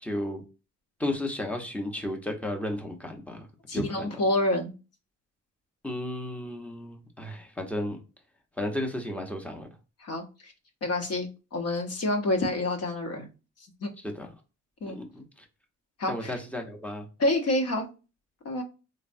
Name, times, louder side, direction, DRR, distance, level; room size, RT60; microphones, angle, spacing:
voice 1, 0.0-0.4 1.0-3.5 3.7-4.1 5.8-8.0 8.6-9.7 14.2-14.3 14.9-15.2 16.1-17.1, left 1 dB, 5° left, 0.7 m, -33 dB
voice 2, 3.7-4.7 10.0-10.5 10.8-13.3 13.8-13.9 14.8-15.0 16.0-16.3 17.2-17.9 18.4-18.6, left 1 dB, 55° left, 0.8 m, -28 dB
3.3 x 2.0 x 2.5 m
cardioid pair, 90°, 30 cm